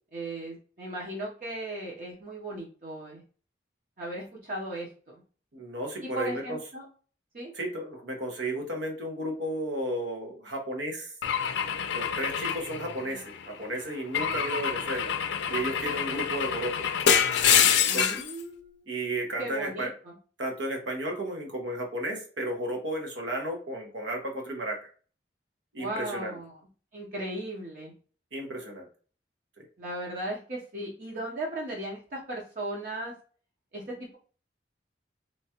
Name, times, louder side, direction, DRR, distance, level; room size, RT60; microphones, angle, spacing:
voice 1, 0.1-3.2 4.0-5.2 6.0-6.8 7.3-7.5 17.9-18.8 19.4-20.2 25.8-26.5 26.9-27.9 29.8-33.1 33.7-34.2, right 1 dB, 50° right, -4 dB, 0.7 m, -37 dB
voice 2, 5.5-6.6 7.5-11.1 11.9-15.1 15.5-16.9 17.5-18.2 18.9-19.9 20.4-24.9 25.7-26.4 28.3-28.9 29.6-29.7, right 1 dB, 90° right, 1 dB, 0.9 m, -33 dB
Car / Engine / Glass, 11.2-13.4 14.1-18.3, left 8 dB, 80° left, 0.4 m, -26 dB
3.0 x 2.2 x 2.9 m, 0.40 s
head